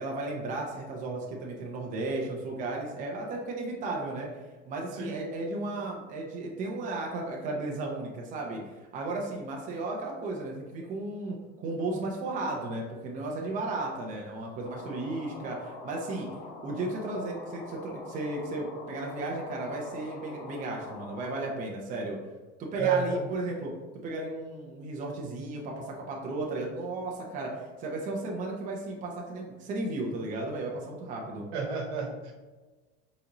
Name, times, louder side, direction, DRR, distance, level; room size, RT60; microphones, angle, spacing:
voice 1, 0.0-4.3 4.7-8.6 8.9-16.3 16.6-22.2 22.6-23.7 24.0-31.5, right 2 dB, 25° right, -1 dB, 0.6 m, -34 dB
voice 2, 4.9-5.2 22.7-23.2 31.5-32.3, right 5 dB, 90° right, 1 dB, 1.1 m, -30 dB
sound 1, 14.6-21.5, left 3 dB, 80° left, 1.0 m, -44 dB
4.1 x 3.8 x 2.9 m, 1.3 s
cardioid pair, 160°, 31 cm